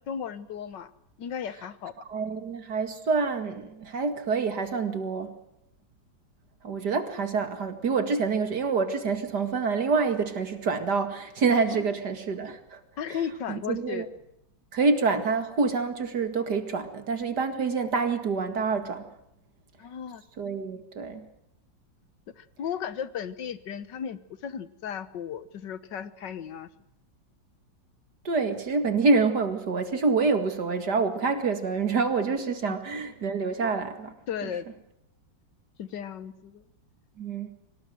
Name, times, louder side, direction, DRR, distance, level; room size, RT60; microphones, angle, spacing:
voice 1, 0.1-0.9 1.2-1.9 11.8-11.9 13.0-14.0 19.8-20.2 22.4-26.7 34.3-34.7 35.8-36.6, left 8 dB, 65° left, 15 dB, 1.8 m, -35 dB
voice 2, 2.1-5.4 6.6-12.8 13.1-13.2 13.5-14.1 14.7-19.1 20.4-21.2 28.2-34.1 34.4-34.5 37.2-37.6, right 4 dB, 55° right, 9 dB, 2.6 m, -27 dB
24.5 x 19.0 x 7.8 m, 0.81 s
omnidirectional pair, 2.1 m